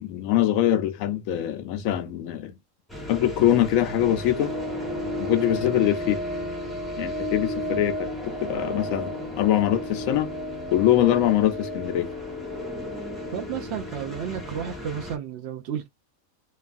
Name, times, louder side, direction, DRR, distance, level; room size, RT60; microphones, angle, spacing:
voice 1, 0.0-2.5 3.1-4.6 5.2-6.2 7.0-10.3 10.7-12.1, left 12 dB, 80° left, 1.0 m, -23 dB
sound 1, 2.9-15.2, left 1 dB, ahead, 0.6 m, -33 dB
voice 2, 13.3-15.9, right 8 dB, 65° right, 0.7 m, -32 dB
3.1 x 2.3 x 2.5 m
omnidirectional pair, 1.4 m